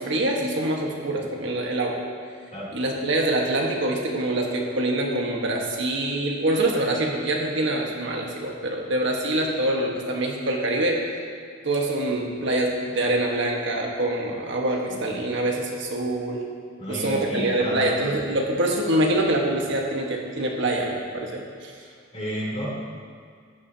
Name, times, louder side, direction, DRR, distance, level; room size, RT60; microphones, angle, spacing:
voice 1, 0.0-2.0 2.7-11.0 11.6-16.4 16.9-21.7, right 1 dB, 65° right, 0 dB, 1.4 m, -25 dB
voice 2, 16.8-18.1 22.1-22.7, equal, 35° left, -5 dB, 3.0 m, -31 dB
14.0 x 10.5 x 2.8 m, 2.1 s
head